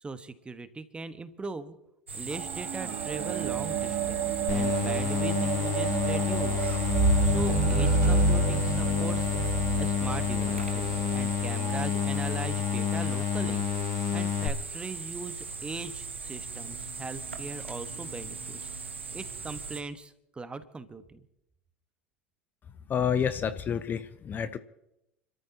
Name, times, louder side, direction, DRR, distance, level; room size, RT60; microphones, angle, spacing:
voice 1, 0.0-1.8 2.1-6.7 7.2-9.4 9.8-18.8 19.1-21.2, right 3 dB, 15° right, 11 dB, 1.2 m, -40 dB
sound 1, 2.1-19.8, right 4 dB, 85° right, 1.3 m, -39 dB
sound 2, 2.3-11.8 12.6-12.7, right 3 dB, 50° right, 2.6 m, -29 dB
sound 3, 4.5-14.5, left 9 dB, 50° left, 1.8 m, -29 dB
voice 2, 22.9-24.6, left 8 dB, 30° left, 13 dB, 0.7 m, -29 dB
29.5 x 13.5 x 2.9 m, 0.85 s
figure-of-eight pair, 75°, 6 cm